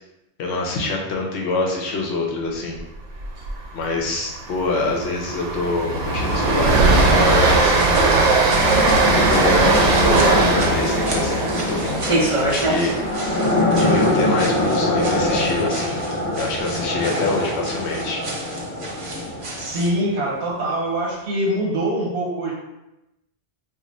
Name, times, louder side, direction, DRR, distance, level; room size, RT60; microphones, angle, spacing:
voice 1, 0.4-2.8 3.7-8.2 9.1-12.9 13.8-16.0 16.4-18.2, left 3 dB, 70° left, 0 dB, 0.9 m, -25 dB
Train, 3.2-3.5 3.8-3.9 4.3-14.4, right 3 dB, 85° right, 0.9 m, -19 dB
sound 1, 6.3-20.1, left 1 dB, 15° left, 0.5 m, -24 dB
sound 2, 7.7-19.9, right 2 dB, 50° right, 0.4 m, -30 dB
voice 2, 19.6-22.5, right 1 dB, 70° right, -4 dB, 1.1 m, -24 dB
2.5 x 2.5 x 4.0 m, 0.94 s
omnidirectional pair, 1.2 m